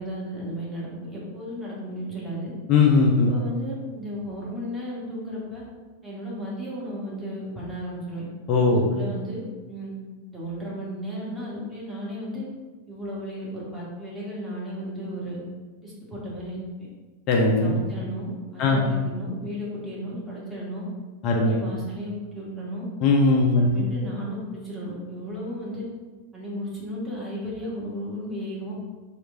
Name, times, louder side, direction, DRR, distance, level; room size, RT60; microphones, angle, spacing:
voice 1, 0.0-2.5 3.3-5.6 6.0-8.2 8.7-9.9 10.3-12.4 12.9-15.4 15.8-16.9 17.6-20.9 21.3-22.9 23.5-25.8 26.3-28.8, equal, 10° right, -7 dB, 0.9 m, -34 dB
voice 2, 2.7-3.3 8.5-8.8 17.3-17.7 18.6-18.8 21.2-21.6 23.0-23.8, left 3 dB, 40° left, -1 dB, 0.3 m, -19 dB
2.9 x 2.1 x 2.4 m, 1.3 s
figure-of-eight pair, 90°, 0 cm